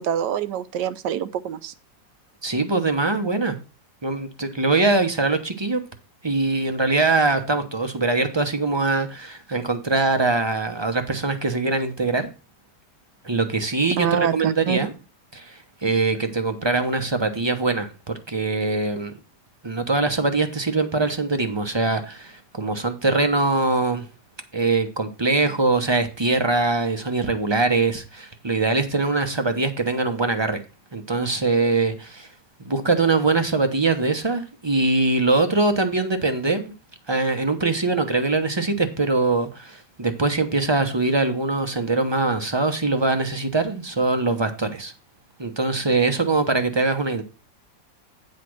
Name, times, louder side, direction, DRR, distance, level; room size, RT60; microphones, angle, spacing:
voice 1, 0.0-1.7 14.0-14.8, right 9 dB, 75° right, 1.3 m, -25 dB
voice 2, 2.4-3.6 4.0-5.8 6.2-12.3 13.2-14.9 15.3-19.1 19.6-24.0 24.5-30.6 30.9-32.3 32.6-36.7 37.1-44.9 45.4-47.2, right 3 dB, 30° right, 0.5 m, -22 dB
9.5 x 4.1 x 6.3 m
omnidirectional pair, 1.9 m